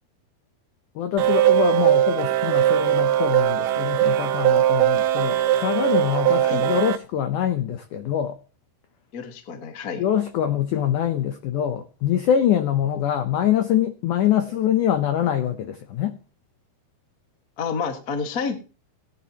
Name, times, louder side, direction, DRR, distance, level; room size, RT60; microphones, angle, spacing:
voice 1, 1.0-8.4 10.0-16.2, left 10 dB, 80° left, 1.8 m, -24 dB
sound 1, 1.2-7.0, right 12 dB, 80° right, 2.5 m, -20 dB
voice 2, 9.1-10.0 17.6-18.6, left 5 dB, 60° left, 0.9 m, -29 dB
18.5 x 10.0 x 2.9 m
omnidirectional pair, 4.7 m